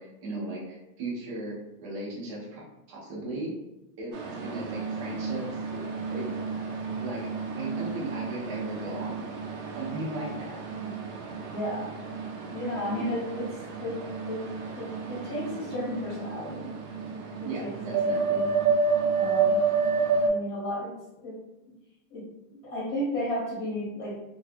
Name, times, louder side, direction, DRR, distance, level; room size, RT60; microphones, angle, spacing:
voice 1, 0.0-1.5 1.8-3.5 4.0-4.1 4.4-6.3 7.0-7.2 7.6-9.3 9.8-10.6 12.9-13.0 17.4-18.4, right 2 dB, 20° right, -5 dB, 0.4 m, -37 dB
sound 1, 4.1-20.3, right 4 dB, 90° right, 0.7 m, -30 dB
voice 2, 11.5-11.9 12.5-13.5 13.8-14.4 14.7-16.7 17.1-18.5 19.1-19.6 20.2-20.9 21.2-21.4 22.1-24.2, left 1 dB, 30° left, -6 dB, 0.9 m, -34 dB
2.6 x 2.3 x 2.5 m, 0.94 s
supercardioid pair, 160°, 48 cm